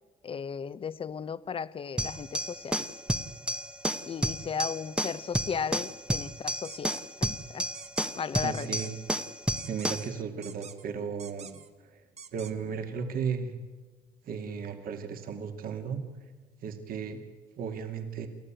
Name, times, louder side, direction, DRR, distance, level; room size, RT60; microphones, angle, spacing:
voice 1, 0.2-2.9 4.1-7.7 8.2-8.8, left 6 dB, 30° left, 16 dB, 0.8 m, -35 dB
sound 1, 2.0-10.1, equal, 5° right, 1.0 m, -32 dB
sound 2, 6.6-7.0 7.7-8.1 8.5-8.9 9.6-10.1 10.4-10.8 11.2-11.7 12.2-12.5, right 6 dB, 40° right, 1.4 m, -46 dB
voice 2, 8.4-9.0 9.7-12.0 12.3-13.5 14.2-16.0 16.6-17.2 17.6-18.3, right 6 dB, 60° right, 6 dB, 2.4 m, -35 dB
29.0 x 13.5 x 9.0 m, 1.4 s
cardioid pair, 110°, 17 cm